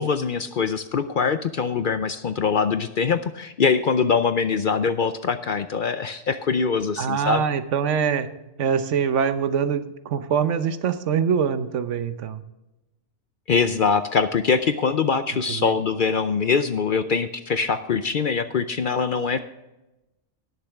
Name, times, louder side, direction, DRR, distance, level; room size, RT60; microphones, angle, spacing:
voice 1, 0.0-7.4 13.5-19.4, left 5 dB, 55° left, 10 dB, 0.6 m, -23 dB
voice 2, 7.0-8.3 8.6-12.4 15.5-15.7, right 7 dB, 75° right, 11 dB, 1.1 m, -24 dB
19.0 x 6.8 x 3.5 m, 0.99 s
omnidirectional pair, 1.3 m